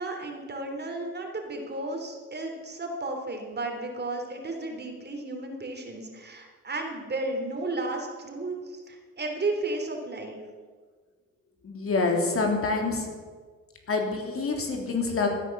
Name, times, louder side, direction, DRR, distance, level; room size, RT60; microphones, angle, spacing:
voice 1, 0.0-10.4, right 2 dB, 35° right, 3 dB, 3.3 m, -33 dB
voice 2, 11.6-13.1 13.9-15.3, left 3 dB, 45° left, 2 dB, 3.2 m, -26 dB
16.0 x 10.0 x 7.2 m, 1.5 s
cardioid pair, 90°, 30 cm